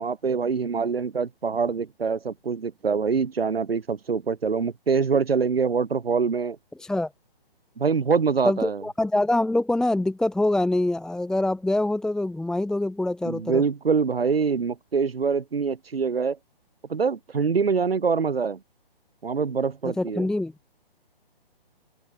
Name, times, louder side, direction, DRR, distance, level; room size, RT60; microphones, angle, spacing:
voice 1, 0.0-6.6 7.8-8.8 13.2-16.4 16.9-18.6 19.2-20.3, right 5 dB, 75° right, 5.6 m, -24 dB
voice 2, 6.8-7.1 8.4-13.6 20.0-20.5, left 2 dB, ahead, 1.6 m, -25 dB
open air
hypercardioid pair, 145°, 30 cm